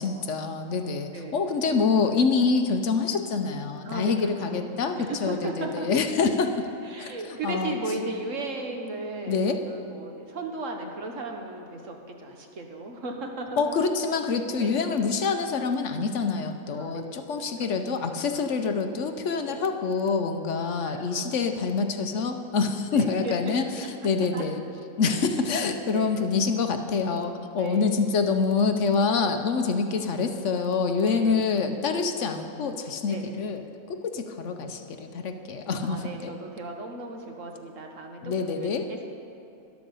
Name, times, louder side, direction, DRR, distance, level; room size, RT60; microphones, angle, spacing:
voice 1, 0.0-6.7 7.0-7.8 9.3-9.6 13.6-23.6 24.0-24.6 25.0-33.6 33.9-36.3 38.2-38.9, left 4 dB, 65° left, 7 dB, 1.0 m, -26 dB
voice 2, 1.1-1.5 3.8-5.9 6.8-13.7 14.6-14.8 16.7-17.2 17.6-17.7 19.4-19.6 20.8-21.4 22.9-23.5 24.3-24.4 25.1-26.2 27.5-28.1 31.0-31.5 33.1-33.3 35.8-39.1, right 2 dB, 65° right, 2 dB, 1.6 m, -36 dB
13.0 x 11.5 x 5.4 m, 2.7 s
omnidirectional pair, 1.5 m